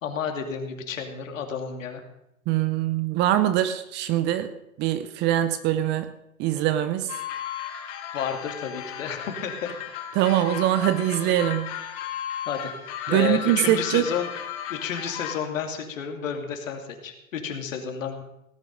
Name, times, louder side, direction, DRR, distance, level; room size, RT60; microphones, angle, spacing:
voice 1, 0.0-2.0 8.1-9.7 10.3-10.4 12.5-12.7 13.1-14.3 14.7-18.2, left 7 dB, 65° left, 4 dB, 2.8 m, -31 dB
voice 2, 2.5-4.5 4.8-6.1 6.4-7.1 10.1-11.8 13.1-14.1, right 12 dB, 25° right, 12 dB, 0.7 m, -23 dB
sound 1, 7.1-15.4, left 10 dB, 35° left, 1.9 m, -35 dB
18.0 x 9.4 x 5.4 m, 0.85 s
hypercardioid pair, 120°, 42 cm